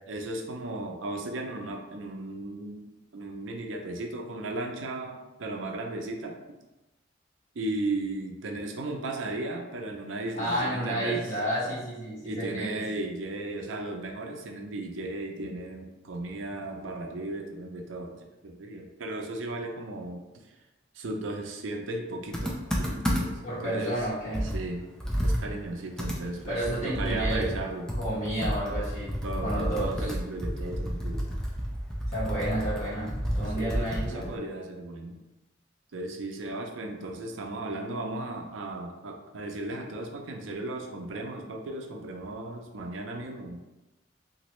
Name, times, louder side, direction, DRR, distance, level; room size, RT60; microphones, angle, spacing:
voice 1, 0.1-6.4 7.5-11.2 12.2-20.5 20.9-24.0 24.4-24.8 25.2-27.9 29.2-31.3 33.5-35.2 35.9-43.6, right 2 dB, 90° right, 2 dB, 0.5 m, -36 dB
voice 2, 10.4-12.8 23.4-24.5 26.5-27.5 28.0-30.1 30.6-30.7 32.1-34.3, right 1 dB, 40° left, -9 dB, 1.3 m, -31 dB
Computer keyboard, 22.3-23.5 23.9-24.0 24.3-27.6 27.9-34.4, equal, 5° left, 0.4 m, -31 dB
2.9 x 2.5 x 3.0 m, 1.0 s
head